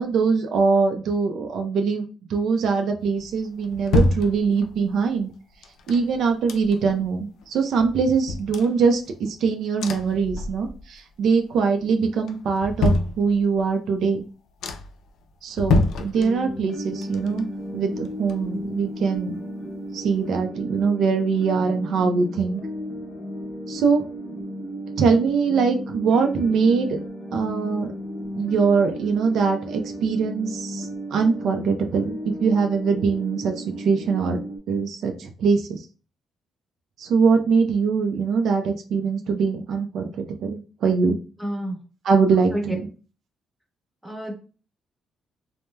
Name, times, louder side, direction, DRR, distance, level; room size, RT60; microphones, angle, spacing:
voice 1, 0.0-5.3 5.9-14.3 15.4-17.5 17.7-19.3 19.9-22.6 23.7-24.1 25.0-27.0 27.3-27.9 28.3-34.4 34.7-35.9 37.0-41.2 42.1-42.8, right 5 dB, 75° right, 5 dB, 0.4 m, -22 dB
sound 1, 3.2-4.9 5.6-7.1 7.4-7.5 7.8-9.4 9.8-11.0 11.3-11.8 12.2-13.7 14.2-14.3 14.6-15.1 15.5-16.7 17.0-18.8 19.1-19.2, left 2 dB, 75° left, 0.3 m, -27 dB
sound 2, 16.1-34.6, equal, 25° left, 0.8 m, -34 dB
voice 2, 41.4-41.8 42.5-42.6 44.0-44.3, equal, ahead, -1 dB, 0.9 m, -29 dB
3.1 x 2.0 x 2.2 m, 0.36 s
cardioid pair, 90°, 0 cm